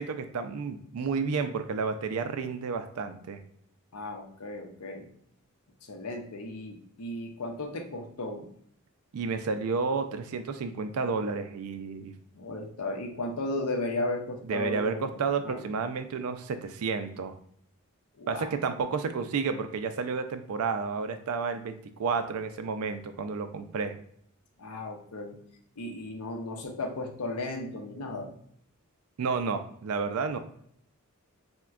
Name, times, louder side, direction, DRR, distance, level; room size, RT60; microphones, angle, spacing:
voice 1, 0.0-3.4 9.1-12.1 14.5-17.3 18.3-24.0 29.2-30.4, right 5 dB, 75° right, 8 dB, 0.4 m, -31 dB
voice 2, 3.9-5.1 5.8-8.5 12.3-15.1 15.4-15.7 18.1-18.5 24.6-25.4 25.8-28.3, left 2 dB, 80° left, 3 dB, 0.6 m, -35 dB
4.3 x 2.1 x 2.3 m, 0.65 s
head